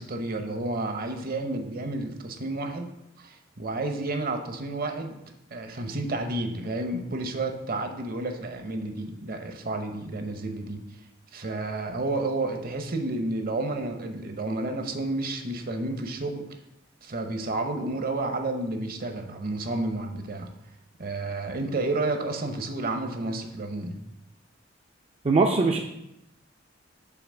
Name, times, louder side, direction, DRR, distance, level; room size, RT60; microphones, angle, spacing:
voice 1, 0.0-2.9 3.2-5.2 5.5-10.8 11.3-16.4 17.0-20.5 21.0-24.0, right 2 dB, 50° right, 5 dB, 0.8 m, -31 dB
voice 2, 25.2-25.8, right 3 dB, 30° right, 1 dB, 0.4 m, -21 dB
5.8 x 4.1 x 6.2 m, 0.85 s
head